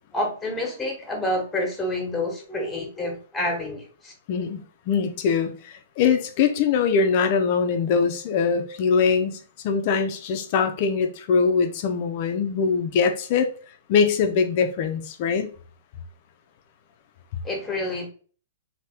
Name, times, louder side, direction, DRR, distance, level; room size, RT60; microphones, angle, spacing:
voice 1, 0.1-4.1 17.4-18.1, left 1 dB, 15° left, 1.4 m, -28 dB
voice 2, 4.3-9.4 9.6-13.5 13.9-15.5, left 5 dB, 45° left, 0.7 m, -22 dB
3.3 x 2.9 x 4.3 m
hypercardioid pair, 115°, 0 cm